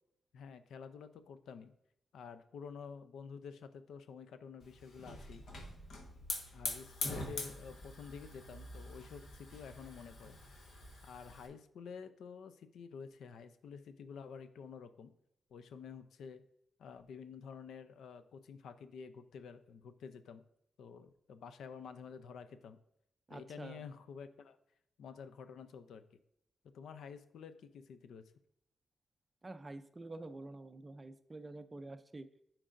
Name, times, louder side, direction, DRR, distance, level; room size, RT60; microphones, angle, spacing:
voice 1, 0.3-1.7 2.1-5.4 6.5-10.4 11.0-15.1 15.5-16.4 16.8-20.4 20.8-22.8 23.3-24.6 25.0-26.0 26.7-28.3, left 6 dB, 90° left, 11 dB, 0.4 m, -50 dB
Hiss / Fire, 4.6-11.5, left 2 dB, 70° left, 1.2 m, -44 dB
voice 2, 23.3-23.8 29.4-32.3, right 2 dB, 20° right, 11 dB, 0.4 m, -48 dB
10.0 x 4.5 x 2.5 m, 0.78 s
cardioid pair, 120°, 0 cm